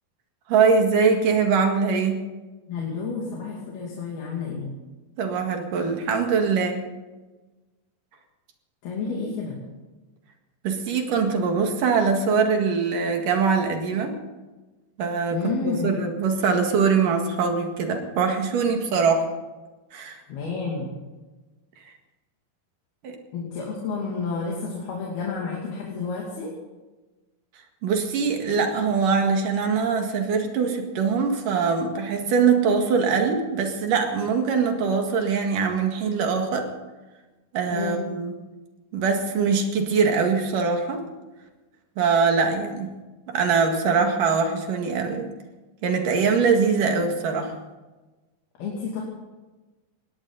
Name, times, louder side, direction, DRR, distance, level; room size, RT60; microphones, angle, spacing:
voice 1, 0.5-2.2 5.2-6.8 10.6-14.2 15.0-19.2 19.9-20.2 23.0-23.2 27.8-36.7 37.5-38.3 38.9-41.0 42.0-42.9 43.3-45.3 45.8-47.5, right 5 dB, 65° right, 4 dB, 3.4 m, -22 dB
voice 2, 2.7-4.8 8.8-9.6 15.3-15.9 20.3-20.9 23.3-26.5 37.7-38.0 48.6-49.0, left 4 dB, 80° left, -3 dB, 4.7 m, -30 dB
21.0 x 17.0 x 4.1 m, 1.2 s
omnidirectional pair, 4.3 m